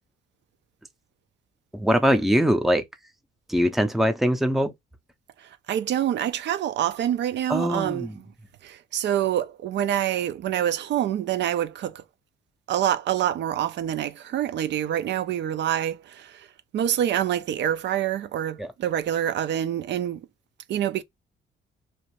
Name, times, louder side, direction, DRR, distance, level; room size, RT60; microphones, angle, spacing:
voice 1, 1.7-2.8 3.5-4.7 7.5-8.1 18.6-18.7, equal, ahead, 0.5 m, -22 dB
voice 2, 5.4-8.3 8.6-12.0 12.7-20.3 20.7-21.0, right 11 dB, 65° right, 0.4 m, -26 dB
2.6 x 2.4 x 3.1 m
cardioid pair, 90°, 20 cm